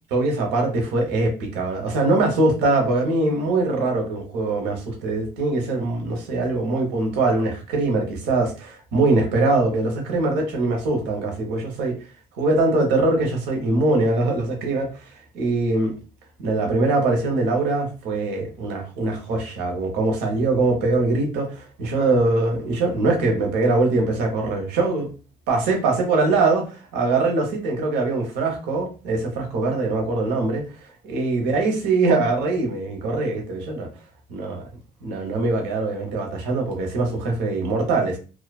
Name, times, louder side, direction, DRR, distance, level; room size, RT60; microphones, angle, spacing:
voice 1, 0.1-12.0 12.4-15.0 15.3-16.0 16.4-25.1 25.5-30.6 31.0-33.9 34.3-34.7 35.0-38.2, right 2 dB, 85° right, 2 dB, 0.9 m, -22 dB
2.5 x 2.3 x 2.3 m, 0.35 s
cardioid pair, 110°, 17 cm